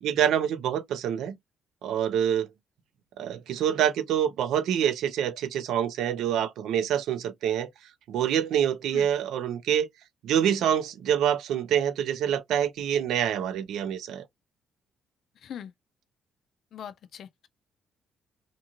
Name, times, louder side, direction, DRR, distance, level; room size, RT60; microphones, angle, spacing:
voice 1, 0.0-1.4 1.8-2.5 3.2-7.7 8.1-9.9 10.2-14.2, right 9 dB, 80° right, 0.5 m, -26 dB
voice 2, 15.4-15.7 16.7-17.5, left 9 dB, 65° left, 0.4 m, -41 dB
2.6 x 2.5 x 2.9 m
cardioid pair, 90°, 0 cm